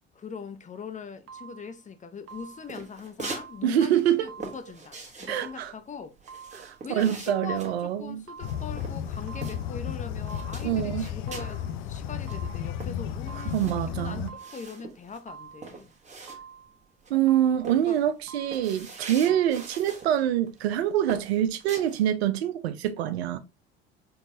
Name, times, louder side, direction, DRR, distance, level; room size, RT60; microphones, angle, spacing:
voice 1, 0.1-6.2 6.8-14.2 14.5-15.9 17.9-18.0 19.3-19.4, left 5 dB, 25° left, 0.6 m, -41 dB
sound 1, 1.3-1.8 2.3-2.8 3.3-3.9 4.3-4.8 5.3-5.8 6.3-6.8 7.3-7.8 8.3-8.8 9.3-9.9 10.3-10.8 11.3-11.8 12.3-12.8 13.3-13.8 14.3-14.9 15.3-15.8 16.3-16.8 17.3-17.8 18.3-18.8 19.3-19.5, right 6 dB, 50° right, 1.1 m, -47 dB
sound 2, 2.3-3.5 3.8-9.9 10.2-11.6 12.0-12.1 12.2-16.7 17.0-17.3 17.6-20.1 20.5-20.7 21.1-22.1, right 4 dB, 20° right, 1.3 m, -42 dB
voice 2, 3.6-4.3 5.3-5.7 6.5-8.2 10.6-11.1 13.5-14.3 17.1-23.4, right 11 dB, 80° right, 0.6 m, -25 dB
sound 3, 8.4-14.3, left 9 dB, 65° left, 0.6 m, -33 dB
4.4 x 3.1 x 2.7 m
hypercardioid pair, 70°, 31 cm